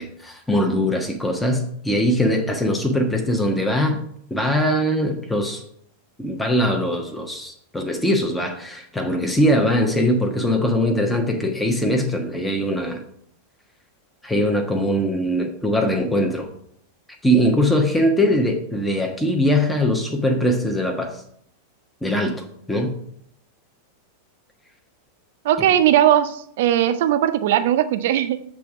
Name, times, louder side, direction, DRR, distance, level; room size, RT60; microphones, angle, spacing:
voice 1, 0.0-4.0 4.3-5.6 6.2-13.0 14.2-16.5 17.2-21.2 22.0-22.9, equal, 5° left, 2 dB, 0.8 m, -21 dB
voice 2, 25.4-28.4, right 11 dB, 55° right, 11 dB, 0.5 m, -18 dB
7.3 x 3.5 x 5.8 m, 0.70 s
figure-of-eight pair, 90°, 0 cm